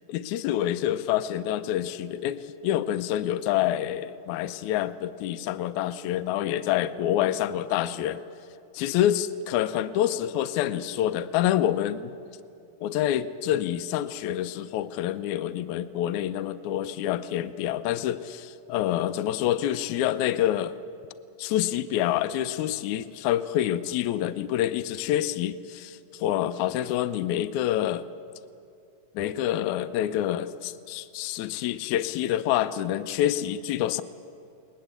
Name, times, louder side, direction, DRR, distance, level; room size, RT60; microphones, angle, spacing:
voice 1, 0.1-8.2 8.7-12.1 12.8-20.8 21.4-28.0 29.2-34.0, left 12 dB, 80° left, 12 dB, 1.9 m, -27 dB
21.0 x 19.5 x 8.1 m, 2.6 s
omnidirectional pair, 3.6 m